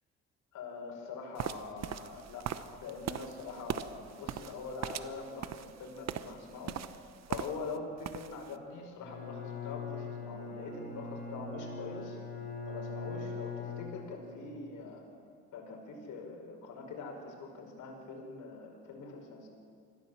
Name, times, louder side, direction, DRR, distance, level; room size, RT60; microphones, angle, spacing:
voice 1, 0.5-12.2 12.6-15.0 15.5-19.5, left 4 dB, 80° left, 1 dB, 5.1 m, -44 dB
sound 1, 1.4-7.8 8.0-8.5, right 9 dB, 60° right, 0.9 m, -40 dB
Bowed string instrument, 9.0-14.4, left 4 dB, 30° left, 5.6 m, -41 dB
24.5 x 15.5 x 7.6 m, 2.2 s
cardioid pair, 90°, 30 cm